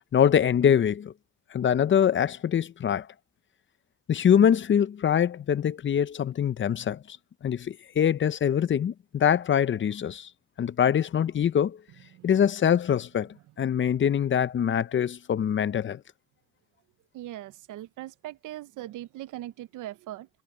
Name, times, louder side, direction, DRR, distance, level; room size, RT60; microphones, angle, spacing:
voice 1, 0.1-1.1 1.5-3.1 4.1-7.2 7.4-10.3 10.6-11.8 12.2-13.3 13.6-16.0, left 8 dB, 40° left, 0.6 m, -24 dB
voice 2, 12.1-12.4 17.1-20.3, right 14 dB, 85° right, 0.8 m, -40 dB
cardioid pair, 90°, 30 cm